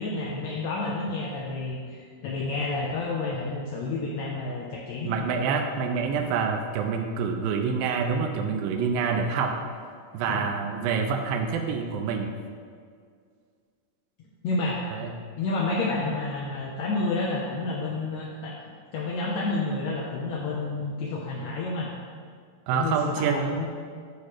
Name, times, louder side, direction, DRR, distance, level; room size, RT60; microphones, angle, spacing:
voice 1, 0.0-5.3 10.3-10.5 14.4-14.8 15.4-18.5 18.9-22.0 22.7-23.7, left 3 dB, 75° left, -4 dB, 1.6 m, -30 dB
voice 2, 5.1-9.6 10.1-12.3 14.9-15.1 22.7-23.5, right 5 dB, 90° right, 4 dB, 2.3 m, -27 dB
8.3 x 3.1 x 6.4 m, 2.1 s
omnidirectional pair, 4.0 m